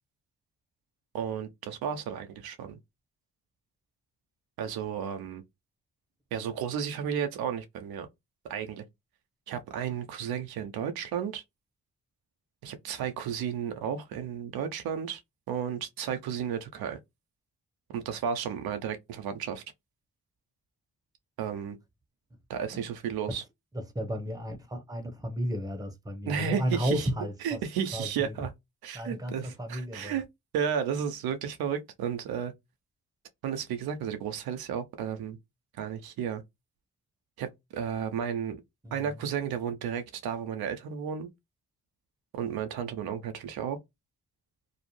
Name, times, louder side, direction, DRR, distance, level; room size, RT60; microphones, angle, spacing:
voice 1, 1.1-2.8 4.6-5.4 6.3-8.1 8.4-8.8 9.5-11.4 12.6-15.2 15.5-17.0 17.9-19.6 21.4-21.8 22.5-23.4 26.3-27.1 27.4-28.5 28.8-30.2 30.5-32.5 33.4-35.4 35.8-36.4 37.4-38.6 38.9-41.3 42.3-43.8, right 8 dB, 85° right, 0.5 m, -33 dB
voice 2, 23.7-27.6 27.9-28.3 28.9-30.2 38.8-39.2, equal, 10° right, 0.8 m, -33 dB
2.6 x 2.0 x 3.0 m
supercardioid pair, 45°, 36 cm